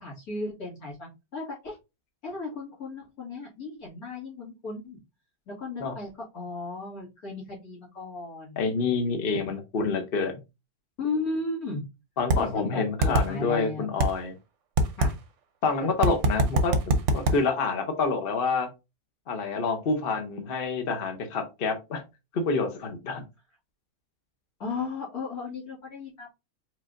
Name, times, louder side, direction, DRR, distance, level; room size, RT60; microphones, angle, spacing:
voice 1, 0.0-1.8 2.2-5.0 5.5-8.7 11.0-11.8 12.3-13.9 15.0-15.2 15.8-15.9 24.6-26.3, left 3 dB, 65° left, -2 dB, 2.6 m, -35 dB
voice 2, 8.6-10.4 12.2-14.3 15.6-16.7 17.1-18.7 19.3-22.0 22.3-23.2, left 4 dB, 45° left, 6 dB, 0.8 m, -27 dB
sound 1, 12.3-12.4 13.0-13.3 14.0-14.1 14.8-15.1 16.0-17.4, right 2 dB, 55° right, 0.9 m, -22 dB
5.0 x 3.9 x 2.5 m, 0.25 s
omnidirectional pair, 1.7 m